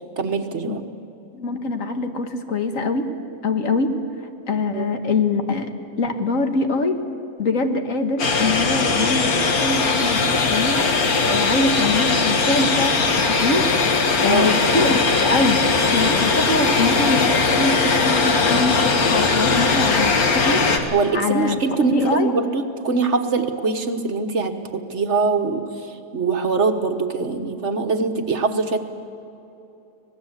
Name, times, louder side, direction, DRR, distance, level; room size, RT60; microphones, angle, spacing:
voice 1, 0.2-0.8 4.7-4.9 14.3-14.7 20.9-25.6 26.1-28.8, right 4 dB, 50° right, 6 dB, 1.5 m, -22 dB
voice 2, 1.3-3.1 3.4-3.9 4.5-5.7 6.0-7.0 7.4-9.3 9.6-10.9 11.2-13.6 14.2-15.6 15.9-21.6 21.9-22.4, left 3 dB, 65° left, 6 dB, 1.9 m, -23 dB
sound 1, 8.2-20.8, left 4 dB, 85° left, 2.2 m, -19 dB
25.5 x 18.5 x 8.1 m, 2.8 s
omnidirectional pair, 1.5 m